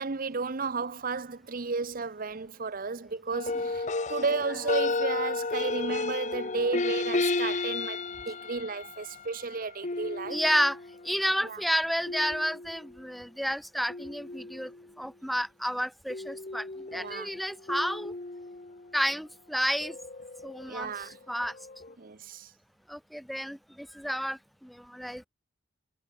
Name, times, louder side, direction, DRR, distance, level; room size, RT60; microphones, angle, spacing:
voice 1, 0.0-10.4 11.4-11.6 16.9-17.3 20.7-21.2 22.0-22.5, right 4 dB, 45° right, 0.8 m, -33 dB
sound 1, 3.3-11.1 12.1-12.9 13.9-14.9 16.1-19.0 19.8-21.1 21.4-21.9, left 3 dB, 40° left, 1.1 m, -33 dB
voice 2, 10.3-14.7 15.0-18.1 18.9-20.0 20.4-21.5 22.9-25.3, equal, ahead, 0.8 m, -31 dB
head